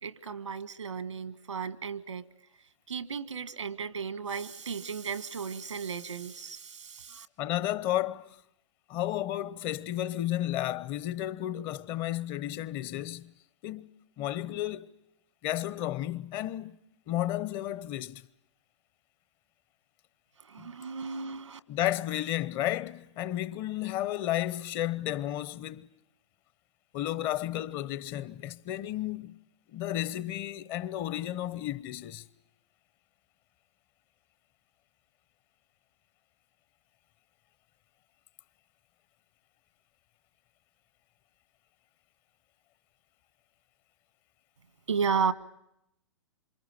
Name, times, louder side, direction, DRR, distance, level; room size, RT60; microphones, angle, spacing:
voice 1, 0.0-2.3 2.9-7.3 20.4-21.6 44.9-45.3, right 6 dB, 80° right, 1.7 m, -34 dB
voice 2, 7.4-8.4 8.9-13.3 13.6-13.9 14.2-14.9 15.4-16.8 17.1-18.2 20.6-20.7 21.7-25.9 26.9-29.3 29.7-32.2, left 13 dB, 30° left, 0.9 m, -32 dB
27.5 x 25.5 x 6.6 m
figure-of-eight pair, 120°, 15 cm